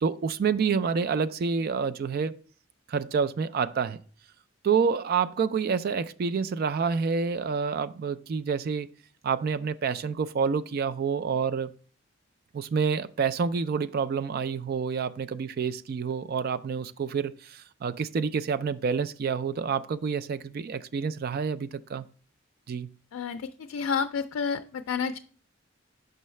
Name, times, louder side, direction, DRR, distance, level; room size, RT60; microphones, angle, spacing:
voice 1, 0.0-2.4 2.9-4.0 4.6-8.9 9.2-11.7 12.5-22.1 22.7-22.9, right 6 dB, 50° right, 0.3 m, -28 dB
voice 2, 23.1-25.2, left 6 dB, 85° left, 0.4 m, -30 dB
6.6 x 5.5 x 3.1 m
head